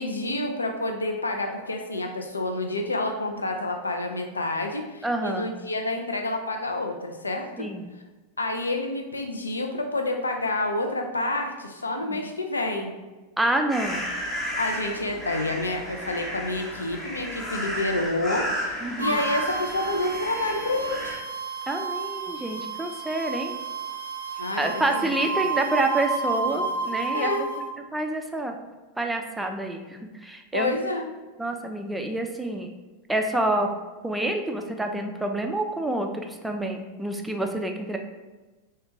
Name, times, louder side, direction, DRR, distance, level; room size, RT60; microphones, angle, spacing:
voice 1, 0.0-7.7 8.4-12.9 14.6-21.2 24.4-25.2 27.1-27.4 30.5-31.1, left 2 dB, 75° left, 4 dB, 0.4 m, -28 dB
voice 2, 5.0-5.5 7.6-7.8 12.1-12.2 13.4-14.0 18.8-19.2 21.7-23.5 24.6-27.5 27.9-28.6 29.0-30.7 31.4-32.7 33.1-33.7 34.0-38.0, right 1 dB, 5° right, 4 dB, 0.3 m, -28 dB
sound 1, 13.7-21.2, equal, 20° left, 0.7 m, -33 dB
sound 2, 19.0-27.6, right 5 dB, 85° right, 0.4 m, -31 dB
3.2 x 2.2 x 3.0 m, 1.2 s
figure-of-eight pair, 90°, 0 cm